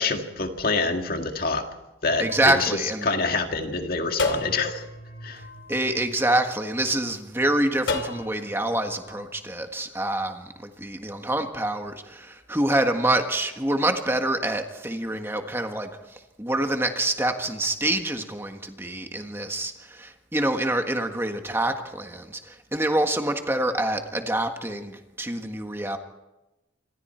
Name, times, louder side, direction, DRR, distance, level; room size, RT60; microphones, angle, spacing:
voice 1, 0.0-1.7 2.0-2.8 3.0-4.8 5.2-5.4, left 3 dB, 50° left, 5 dB, 2.0 m, -26 dB
sound 1, 2.1-3.5 4.2-6.7 7.9-9.3, left 3 dB, 80° left, 2.8 m, -33 dB
voice 2, 2.2-3.1 5.7-26.0, right 1 dB, 10° right, 5 dB, 1.6 m, -26 dB
27.5 x 25.0 x 4.5 m, 1.0 s
head